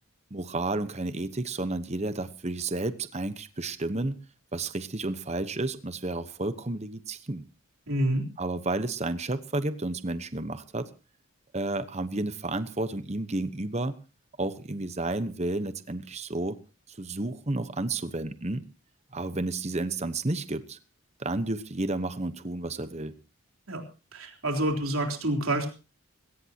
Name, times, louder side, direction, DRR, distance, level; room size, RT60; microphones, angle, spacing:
voice 1, 0.3-4.2 4.5-7.4 8.4-10.9 11.5-14.0 14.4-16.6 16.9-18.6 19.1-20.8 21.2-23.2, right 2 dB, 30° right, 12 dB, 1.0 m, -31 dB
voice 2, 7.9-8.2 23.7-23.8 24.1-25.7, right 1 dB, 70° right, 2 dB, 3.8 m, -27 dB
20.5 x 17.5 x 2.9 m, 0.33 s
head